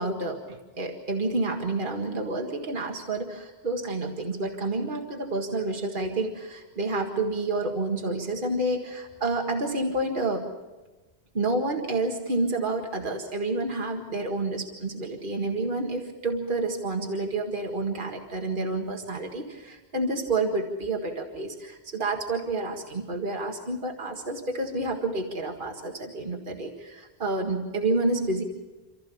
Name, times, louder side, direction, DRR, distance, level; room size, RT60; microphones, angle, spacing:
voice 1, 0.0-10.5 11.3-28.4, right 2 dB, 55° right, 2 dB, 2.0 m, -29 dB
28.0 x 14.0 x 7.1 m, 1.2 s
omnidirectional pair, 1.0 m